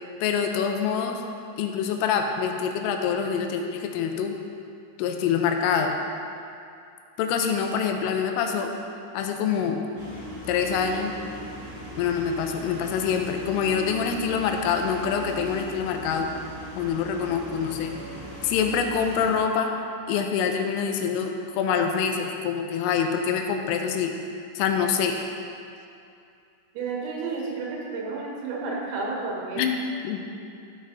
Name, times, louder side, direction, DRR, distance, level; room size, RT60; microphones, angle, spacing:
voice 1, 0.2-1.2 1.6-4.4 5.0-5.9 7.2-8.7 9.1-9.8 10.5-11.2 12.0-16.3 16.8-17.9 18.4-19.7 20.1-24.1 24.6-25.1 29.6-30.2, left 7 dB, 85° left, 4 dB, 3.2 m, -25 dB
sound 1, 10.0-19.3, equal, 45° right, 1.1 m, -39 dB
voice 2, 26.7-29.7, right 4 dB, 90° right, -3 dB, 4.2 m, -31 dB
12.5 x 6.3 x 4.0 m, 2.5 s
omnidirectional pair, 5.9 m